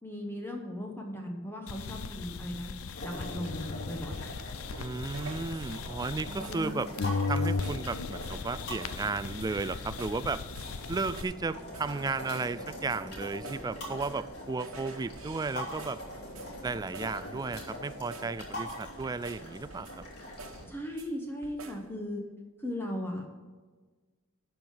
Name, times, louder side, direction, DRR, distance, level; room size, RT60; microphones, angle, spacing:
voice 1, 0.0-2.7 3.0-4.3 6.3-6.9 20.4-22.2 22.6-23.4, left 1 dB, 10° left, 1 dB, 1.0 m, -38 dB
sound 1, 1.7-6.7 7.0-11.2, left 4 dB, 85° left, 0.6 m, -36 dB
sound 2, 2.9-20.6, left 1 dB, 55° left, 2.9 m, -43 dB
sound 3, 4.7-6.1 6.4-6.7 7.0-7.3 7.6-7.9 8.2-8.5 8.8-9.1 9.4-10.3 10.5-11.4 11.7-12.0 12.3-14.3 14.6-17.2 17.5-17.8 18.1-18.4 18.7-20.1 20.4-21.1 21.4-21.9, right 3 dB, 80° right, 1.2 m, -49 dB
voice 2, 4.8-6.9 7.3-10.4 10.9-16.0 16.6-20.0, right 3 dB, 20° right, 15 dB, 0.3 m, -34 dB
11.5 x 4.6 x 7.4 m, 1.4 s
head